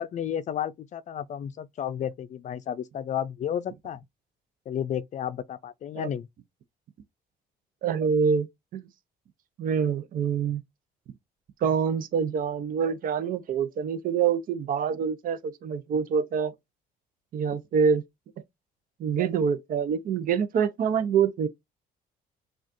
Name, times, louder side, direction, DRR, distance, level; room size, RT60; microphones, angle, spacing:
voice 1, 0.0-4.0 4.7-6.3, left 9 dB, 45° left, 0.5 m, -32 dB
voice 2, 7.8-8.5 8.7-8.8 9.6-10.6 11.6-16.5 17.3-18.0 19.0-21.5, right 6 dB, 55° right, 0.7 m, -26 dB
6.2 x 2.4 x 2.6 m
cardioid pair, 110°, 17 cm